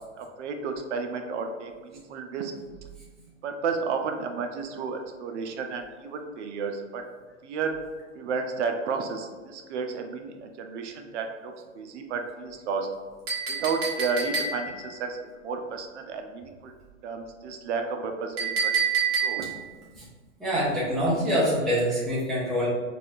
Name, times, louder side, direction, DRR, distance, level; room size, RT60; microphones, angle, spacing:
voice 1, 0.2-2.5 3.4-7.0 7.4-7.8 8.1-12.9 13.5-16.7 17.0-18.7 19.2-19.4, right 5 dB, 60° right, 5 dB, 0.6 m, -32 dB
Chink clink, 13.3-14.9 18.4-19.7, right 6 dB, 35° right, 1.2 m, -27 dB
voice 2, 20.4-22.7, equal, ahead, -9 dB, 0.3 m, -25 dB
4.1 x 2.4 x 2.6 m, 1.4 s
hypercardioid pair, 115°, 40 cm